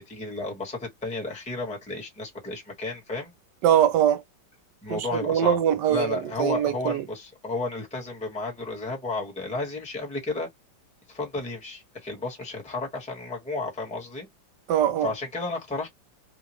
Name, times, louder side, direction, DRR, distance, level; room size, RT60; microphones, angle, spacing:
voice 1, 0.0-3.3 4.8-5.6 5.9-10.5 11.1-14.3 15.0-15.9, left 2 dB, 5° left, 1.1 m, -32 dB
voice 2, 3.6-4.2 4.9-7.0 14.7-15.1, right 10 dB, 70° right, 1.2 m, -22 dB
3.7 x 2.3 x 3.0 m
omnidirectional pair, 2.1 m